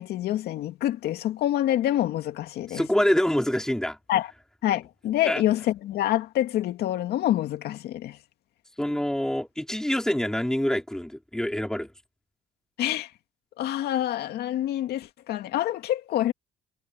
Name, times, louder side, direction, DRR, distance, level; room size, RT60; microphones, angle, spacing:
voice 1, 0.0-2.8 4.1-4.3 4.6-8.2 12.8-13.1 13.6-16.3, left 13 dB, 75° left, 2.3 m, -26 dB
voice 2, 2.7-4.0 5.2-5.4 8.8-11.9, left 1 dB, 5° left, 4.0 m, -26 dB
cardioid pair, 110°, 17 cm